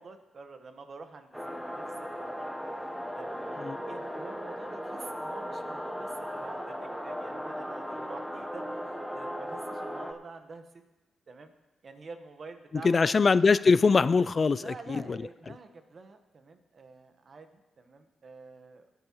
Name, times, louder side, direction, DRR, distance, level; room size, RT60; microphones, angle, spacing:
voice 1, 0.0-10.8 11.3-11.5 11.8-13.2 14.6-18.9, right 4 dB, 50° right, 7 dB, 1.2 m, -48 dB
sound 1, 1.3-10.1, equal, ahead, 1.0 m, -37 dB
voice 2, 12.8-15.2, left 4 dB, 45° left, 17 dB, 0.3 m, -22 dB
17.5 x 9.6 x 3.0 m, 1.1 s
cardioid pair, 70°, 0 cm